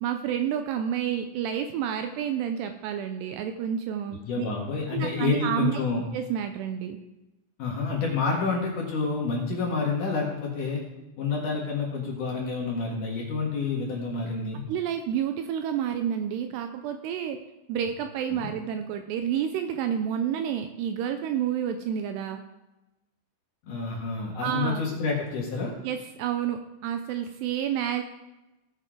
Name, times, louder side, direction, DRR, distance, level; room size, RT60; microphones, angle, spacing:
voice 1, 0.0-4.5 4.9-5.8 6.1-7.0 14.7-17.4 17.7-22.4 24.4-24.8 25.8-28.0, right 9 dB, 80° right, 6 dB, 2.5 m, -29 dB
voice 2, 4.3-6.0 7.6-10.8 11.2-14.6 18.3-18.5 23.6-25.7, left 4 dB, 55° left, -2 dB, 2.8 m, -28 dB
18.0 x 6.7 x 3.8 m, 1.0 s
omnidirectional pair, 5.2 m